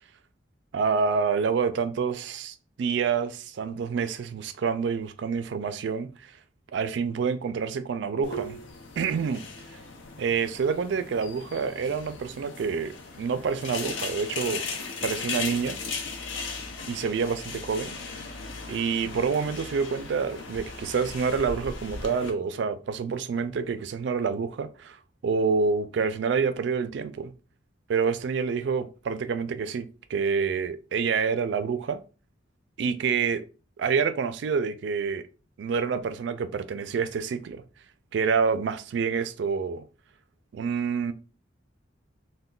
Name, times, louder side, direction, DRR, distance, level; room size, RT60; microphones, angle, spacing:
voice 1, 0.7-6.1 6.7-8.6 9.0-9.4 10.2-14.6 15.0-15.8 16.9-18.2 18.7-25.0 25.2-27.3 27.9-32.0 32.8-33.4 33.8-35.2 35.6-37.6 38.1-39.8 40.5-41.1, right 5 dB, 65° right, 0.3 m, -27 dB
sound 1, 8.2-22.3, left 4 dB, 85° left, 0.6 m, -37 dB
2.2 x 2.2 x 3.6 m
head